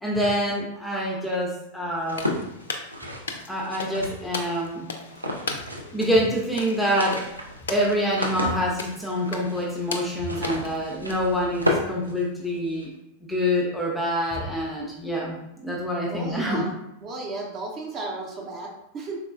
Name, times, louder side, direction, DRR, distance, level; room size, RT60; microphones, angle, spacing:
voice 1, 0.0-2.3 3.5-4.8 5.9-7.3 7.7-12.9 13.3-15.4 15.6-16.7, equal, 5° left, -3 dB, 0.5 m, -26 dB
sound 1, 2.0-4.5 5.1-6.0 6.3-6.4 6.7-12.8, left 1 dB, 85° right, 0.4 m, -32 dB
sound 2, 2.1-11.8, left 4 dB, 65° left, 0.3 m, -38 dB
voice 2, 16.1-16.7 17.0-19.2, right 2 dB, 35° right, -1 dB, 0.7 m, -34 dB
3.7 x 2.3 x 2.3 m, 0.84 s
figure-of-eight pair, 90°, 0 cm